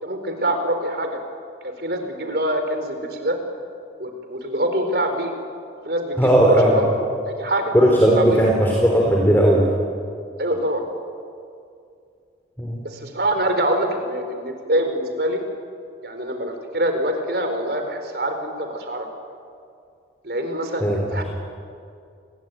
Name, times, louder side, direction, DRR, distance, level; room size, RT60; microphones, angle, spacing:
voice 1, 0.0-1.2 1.8-3.4 4.0-5.3 5.9-7.7 8.1-8.4 10.4-10.8 12.8-15.4 16.0-19.1 20.2-21.2, right 1 dB, 55° right, 6 dB, 4.3 m, -25 dB
voice 2, 6.2-6.8 7.7-9.7 12.6-12.8 20.8-21.2, right 1 dB, 10° left, -1 dB, 3.8 m, -17 dB
29.5 x 21.5 x 9.3 m, 2.4 s
head